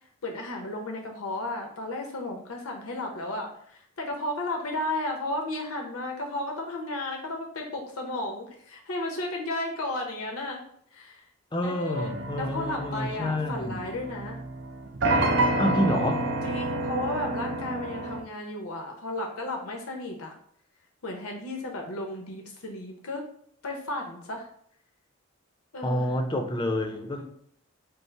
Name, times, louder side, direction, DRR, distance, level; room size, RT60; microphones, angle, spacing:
voice 1, 0.2-10.6 10.9-11.3 11.6-14.4 15.8-20.3 21.0-23.2 23.6-24.5 25.7-26.1 27.2-27.3, left 2 dB, 85° left, 2 dB, 0.8 m, -34 dB
voice 2, 11.5-13.8 15.6-16.2 25.8-27.2, left 1 dB, 20° left, 5 dB, 0.5 m, -28 dB
sound 1, 12.0-18.2, right 2 dB, 55° right, 0.5 m, -29 dB
5.3 x 2.0 x 4.5 m, 0.65 s
head